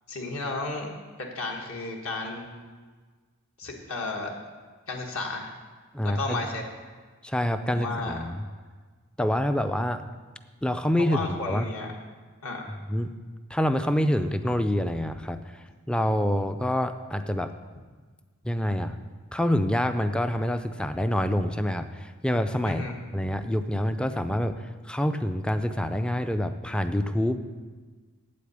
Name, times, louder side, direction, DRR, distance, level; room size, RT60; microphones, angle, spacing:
voice 1, 0.1-0.9 1.2-2.5 3.6-4.3 4.9-5.5 6.0-6.6 7.7-8.2 11.1-11.9 12.4-12.8 22.6-22.9, left 3 dB, 65° left, 0 dB, 1.5 m, -33 dB
voice 2, 5.9-6.4 7.2-8.4 9.2-10.0 10.6-11.7 12.9-13.1 13.5-17.5 18.4-19.0 19.3-22.8 23.1-27.4, left 1 dB, 5° left, 9 dB, 0.4 m, -26 dB
8.5 x 8.4 x 8.0 m, 1.4 s
head